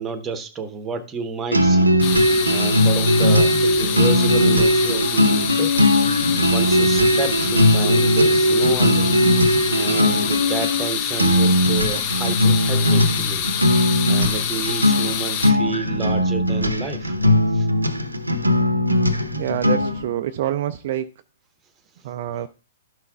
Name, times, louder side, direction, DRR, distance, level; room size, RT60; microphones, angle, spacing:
voice 1, 0.0-2.0 2.5-5.7 6.5-9.2 9.7-13.5 14.1-17.1 17.5-17.7, right 5 dB, 20° right, 11 dB, 0.9 m, -30 dB
sound 1, 1.5-20.1, left 1 dB, 85° right, 0.7 m, -19 dB
sound 2, 2.0-15.5, left 9 dB, 40° left, 0.9 m, -27 dB
voice 2, 19.3-21.1 22.0-22.5, right 12 dB, 45° right, 9 dB, 0.4 m, -26 dB
12.5 x 5.7 x 2.3 m, 0.35 s
figure-of-eight pair, 115°, 0 cm